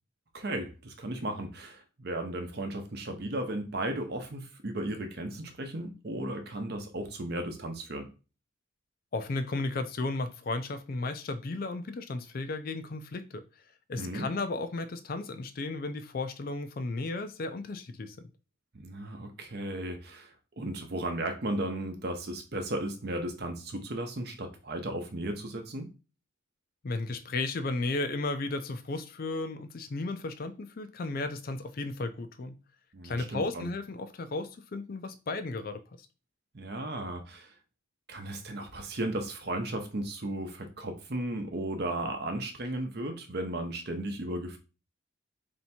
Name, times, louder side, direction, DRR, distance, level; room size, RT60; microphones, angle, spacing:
voice 1, 0.3-8.1 13.9-14.3 18.7-25.9 32.9-33.7 36.5-37.5 38.1-44.6, right 1 dB, 50° right, 0.7 m, -35 dB
voice 2, 9.1-13.4 13.9-18.2 26.8-32.5 33.0-35.8, left 3 dB, 45° left, 0.4 m, -34 dB
3.3 x 2.8 x 4.2 m
head